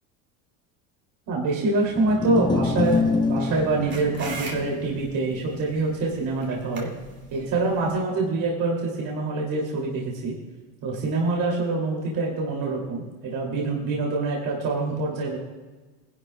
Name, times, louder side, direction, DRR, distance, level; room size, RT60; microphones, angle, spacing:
voice 1, 1.3-6.9 7.3-10.3 10.8-15.4, right 3 dB, 55° right, -2 dB, 3.0 m, -25 dB
sound 1, 1.8-8.2, left 4 dB, 10° left, 0.4 m, -29 dB
sound 2, 2.8-8.0, right 3 dB, 30° right, 2.8 m, -41 dB
20.0 x 11.5 x 2.4 m, 1.3 s
supercardioid pair, 100°, 39 cm